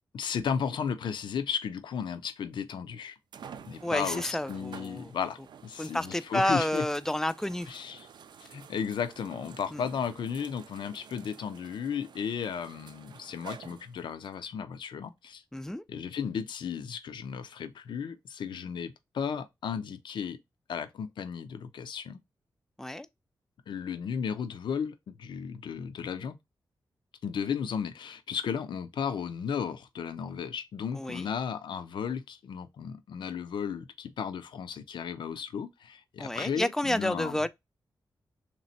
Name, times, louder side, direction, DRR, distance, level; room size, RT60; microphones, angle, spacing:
voice 1, 0.1-3.2 3.6-6.9 7.7-8.1 8.4-15.4 15.9-20.4 20.7-22.2 23.7-26.4 27.2-37.5, left 7 dB, 90° left, 0.5 m, -34 dB
sound 1, 2.2-2.3 3.3-14.4 15.1-15.2 18.6-18.7, right 7 dB, 70° right, 0.4 m, -50 dB
voice 2, 3.8-5.1 5.8-7.7 9.7-9.8 15.5-15.8 22.8-23.1 30.9-31.3 36.2-37.5, left 1 dB, 5° left, 0.3 m, -30 dB
3.3 x 3.1 x 4.0 m
wide cardioid pair, 120°, 8 cm